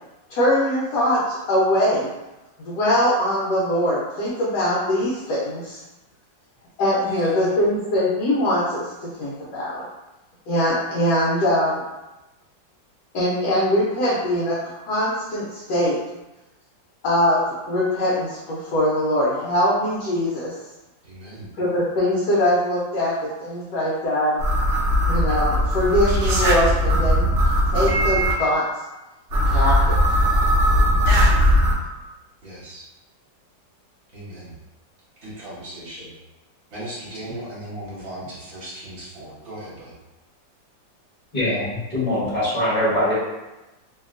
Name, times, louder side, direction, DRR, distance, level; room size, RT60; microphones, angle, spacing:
voice 1, 0.3-2.1 2.6-5.8 6.8-8.8 9.2-9.8 10.5-11.8 13.1-14.6 14.8-16.0 17.0-17.4 17.7-20.5 21.6-23.1 23.4-24.4 25.1-27.3 27.7-28.6 29.5-29.8, left 1 dB, 70° left, -7 dB, 1.1 m, -22 dB
voice 2, 7.0-7.5 21.0-21.5 31.1-31.6 32.4-32.9 34.1-34.5 35.2-36.1 36.7-39.9, right 1 dB, 45° right, -8 dB, 1.1 m, -38 dB
sound 1, 24.4-28.3 29.3-31.7, equal, 60° right, 0.7 m, -19 dB
voice 3, 41.3-43.1, left 1 dB, 30° left, -11 dB, 1.0 m, -22 dB
2.8 x 2.8 x 2.4 m, 1.0 s
omnidirectional pair, 2.1 m